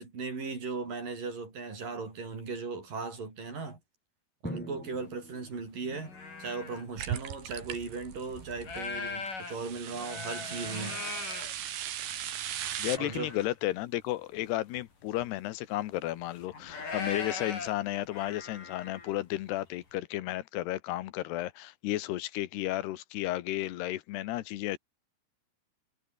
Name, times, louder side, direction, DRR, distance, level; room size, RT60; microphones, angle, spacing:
voice 1, 0.0-3.8 4.4-11.0 13.0-13.3, right 4 dB, 55° right, 8.1 m, -37 dB
Drum, 4.4-6.4, equal, ahead, 5.8 m, -43 dB
sound 1, 4.9-5.0 5.5-6.8 7.5-7.6 8.1-12.1 12.6-13.5 13.8-13.9 14.4-14.5 14.8-15.4 16.1-19.2, left 4 dB, 55° left, 8.1 m, -40 dB
sound 2, 7.0-9.0 9.5-13.0, right 11 dB, 85° right, 4.2 m, -38 dB
voice 2, 12.8-24.8, left 15 dB, 90° left, 3.2 m, -33 dB
omnidirectional pair, 4.7 m